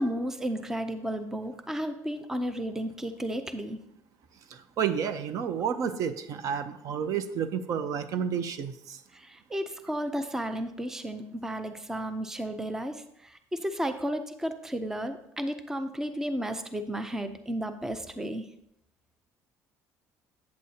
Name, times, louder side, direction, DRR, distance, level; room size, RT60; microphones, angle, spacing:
voice 1, 0.0-3.8 9.1-18.5, equal, 5° right, 9 dB, 0.5 m, -33 dB
voice 2, 4.5-9.0, right 7 dB, 55° right, 11 dB, 0.6 m, -30 dB
8.5 x 7.8 x 2.8 m, 0.77 s
cardioid pair, 135°, 7 cm